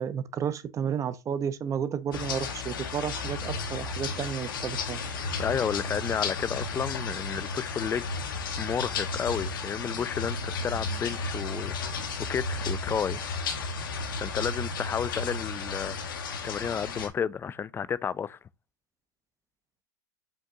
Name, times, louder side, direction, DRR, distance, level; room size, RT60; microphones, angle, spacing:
voice 1, 0.0-5.0, right 8 dB, 30° right, 0.6 m, -32 dB
sound 1, 2.1-17.1, left 4 dB, 85° left, 1.1 m, -33 dB
voice 2, 5.4-8.1 8.6-12.0 12.3-13.2 14.1-16.0 16.4-18.4, left 7 dB, 20° left, 0.3 m, -31 dB
5.3 x 2.7 x 3.7 m
hypercardioid pair, 100°, 11 cm